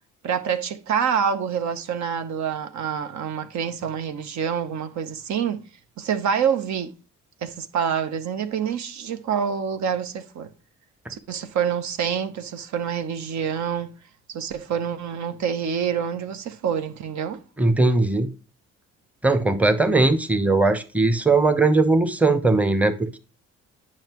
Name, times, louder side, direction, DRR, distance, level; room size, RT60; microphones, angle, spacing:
voice 1, 0.2-5.6 6.0-6.9 7.4-10.5 11.1-13.9 14.3-17.4, right 7 dB, 70° right, 0.9 m, -26 dB
voice 2, 17.6-18.3 19.2-23.2, right 3 dB, 5° right, 0.9 m, -19 dB
8.8 x 6.0 x 3.0 m
cardioid pair, 90°, 30 cm